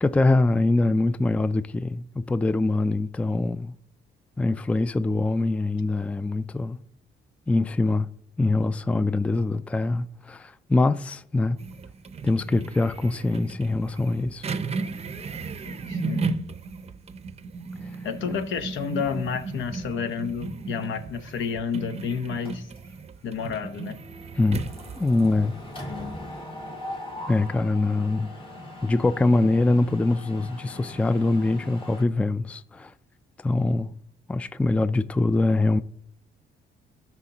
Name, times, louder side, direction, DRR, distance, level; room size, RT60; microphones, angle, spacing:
voice 1, 0.0-3.7 4.4-6.8 7.5-8.1 8.4-11.6 12.2-14.5 24.4-24.6 25.0-25.5 27.3-28.3 28.8-32.9 33.4-33.9 34.3-35.8, left 2 dB, 5° left, 0.3 m, -23 dB
sound 1, 11.6-25.4, right 4 dB, 30° right, 0.6 m, -35 dB
voice 2, 15.6-16.2 18.0-22.7 23.2-24.0, left 6 dB, 75° left, 1.0 m, -30 dB
Mechanisms, 22.5-23.1 23.4-23.6 23.9-32.0, left 1 dB, 25° left, 2.1 m, -40 dB
13.0 x 5.9 x 2.9 m
cardioid pair, 90°, 20 cm